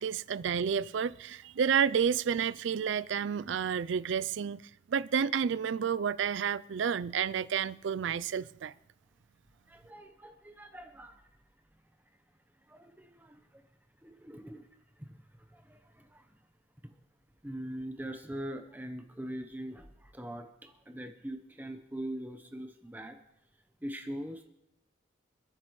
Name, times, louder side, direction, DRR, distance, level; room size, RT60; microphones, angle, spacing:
voice 1, 0.0-4.6 4.9-8.7, right 7 dB, 65° right, 0.4 m, -30 dB
voice 2, 9.7-11.3 12.6-13.6 14.0-14.7 15.0-16.3 16.8-16.9 17.4-23.2 23.8-24.5, right 1 dB, 10° right, 0.8 m, -42 dB
28.5 x 10.0 x 3.1 m
head